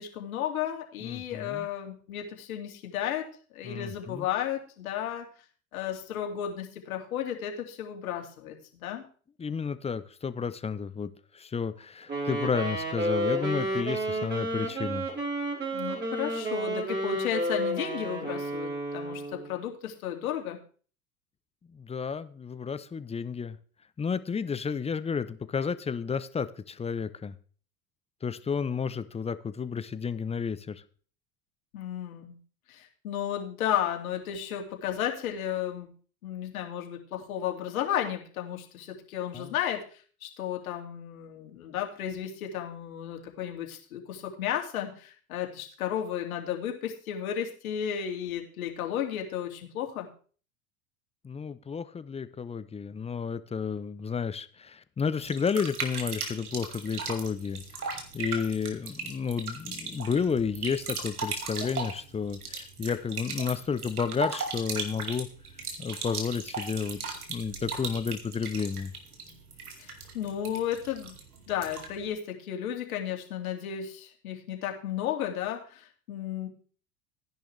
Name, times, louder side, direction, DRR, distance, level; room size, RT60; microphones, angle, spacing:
voice 1, 0.0-3.3 3.5-5.3 5.7-8.6 8.8-9.0 15.7-20.6 31.7-32.4 32.7-35.9 36.2-39.8 40.2-50.1 69.8-71.2 71.5-76.5, left 10 dB, 70° left, 3 dB, 2.7 m, -33 dB
voice 2, 1.0-1.7 3.6-4.3 9.4-15.1 21.7-23.6 24.0-27.3 28.2-30.8 39.3-39.5 51.2-57.6 58.1-65.3 65.8-68.9, left 6 dB, 15° left, 14 dB, 0.7 m, -32 dB
Wind instrument woodwind instrument, 12.1-19.5, right 1 dB, 25° right, 5.0 m, -31 dB
sound 1, 55.2-72.0, right 4 dB, 85° right, 2.5 m, -37 dB
14.5 x 10.5 x 3.4 m, 0.42 s
hypercardioid pair, 85°, 43 cm